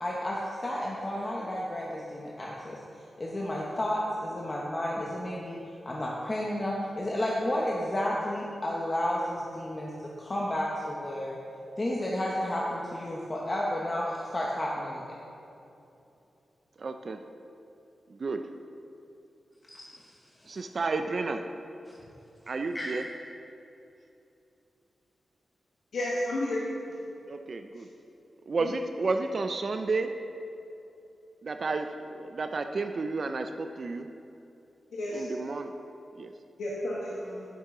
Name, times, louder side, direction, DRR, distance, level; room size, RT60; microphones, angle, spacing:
voice 1, 0.0-2.8 3.2-5.6 5.8-9.9 10.2-11.4 11.8-15.2 19.7-20.1 20.4-20.5 21.9-22.0 22.7-22.9, left 1 dB, 30° left, -4 dB, 1.0 m, -32 dB
voice 2, 16.8-17.2 18.1-18.4 20.5-21.4 22.5-23.0 27.3-27.9 28.5-30.1 31.4-31.9 32.2-34.1 35.1-35.7 36.2-36.3, right 3 dB, 55° right, 6 dB, 0.4 m, -31 dB
voice 3, 25.9-26.6 28.6-28.7 34.9-35.2 36.6-37.4, left 1 dB, 90° left, -7 dB, 1.5 m, -31 dB
9.7 x 7.5 x 3.8 m, 2.8 s
wide cardioid pair, 90°, 0 cm